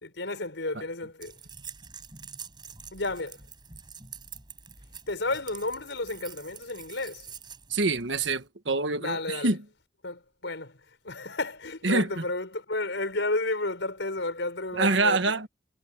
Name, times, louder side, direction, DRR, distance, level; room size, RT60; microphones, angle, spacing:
voice 1, 0.0-1.3 2.9-3.4 5.1-7.2 9.0-9.5 10.0-10.7 11.0-15.2, left 2 dB, 85° left, 5.0 m, -32 dB
sound 1, 1.2-8.4, right 6 dB, 25° right, 5.6 m, -46 dB
voice 2, 7.7-9.6 11.8-12.2 14.7-15.5, right 3 dB, 90° right, 1.5 m, -26 dB
head